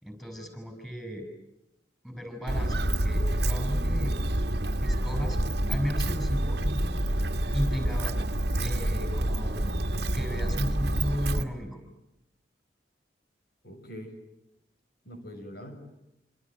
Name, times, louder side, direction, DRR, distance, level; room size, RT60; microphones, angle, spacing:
voice 1, 0.0-1.3 2.0-4.2 4.8-5.4 5.7-7.0 7.5-8.1 8.5-9.7 10.1-11.8, equal, ahead, 5 dB, 6.3 m, -34 dB
Walk footsteps, 2.5-11.4, right 1 dB, 65° right, 1.8 m, -28 dB
voice 2, 13.6-14.1 15.0-15.8, equal, 60° left, 6 dB, 6.4 m, -43 dB
28.0 x 27.0 x 7.6 m, 0.87 s
head